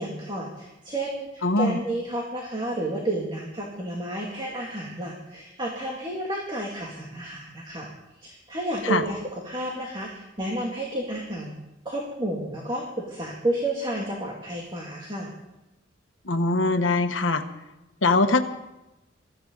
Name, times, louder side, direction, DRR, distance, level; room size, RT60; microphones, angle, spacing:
voice 1, 0.0-7.9 8.2-11.5 11.8-15.3, right 1 dB, 25° right, -2 dB, 2.6 m, -31 dB
voice 2, 1.4-1.8 8.9-9.0 16.3-17.4 18.0-18.5, left 2 dB, 85° left, 7 dB, 1.3 m, -22 dB
23.5 x 14.5 x 4.0 m, 0.96 s
head